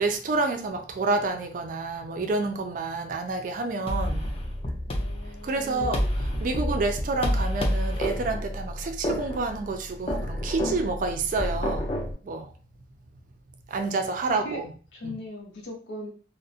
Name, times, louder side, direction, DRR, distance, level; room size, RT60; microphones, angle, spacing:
voice 1, 0.0-4.3 5.4-6.0 6.4-11.9 12.2-12.5 13.7-14.7 15.0-15.2, right 3 dB, 45° right, 5 dB, 0.3 m, -28 dB
sound 1, 3.9-12.1, equal, 35° left, 0.4 m, -29 dB
voice 2, 4.9-6.2 14.2-14.6 14.9-16.1, left 1 dB, 90° left, 1 dB, 0.6 m, -39 dB
2.4 x 2.0 x 2.6 m, 0.40 s
head